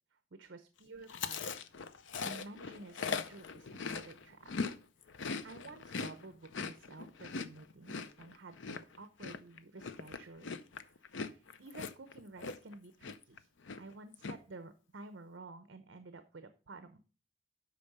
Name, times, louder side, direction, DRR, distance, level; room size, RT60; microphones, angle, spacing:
voice 1, 0.1-1.5 2.0-4.5 5.4-13.5 13.8-17.0, right 3 dB, 60° right, 9 dB, 0.7 m, -52 dB
Chewing mastication, 1.1-4.8 5.0-12.8 13.0-13.4 13.6-14.3, left 5 dB, 65° left, 0.6 m, -40 dB
8.4 x 5.6 x 5.4 m, 0.36 s
head